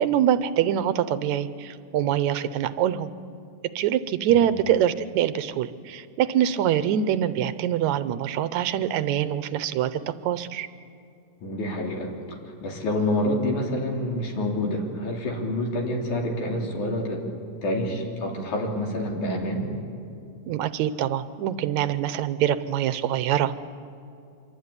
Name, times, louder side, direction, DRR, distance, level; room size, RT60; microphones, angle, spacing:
voice 1, 0.0-3.1 3.8-10.7 20.5-23.7, right 10 dB, 80° right, 13 dB, 2.1 m, -24 dB
voice 2, 11.4-17.2 17.6-19.7, left 1 dB, 90° left, 0 dB, 4.9 m, -28 dB
25.5 x 23.5 x 9.7 m, 2.5 s
omnidirectional pair, 3.3 m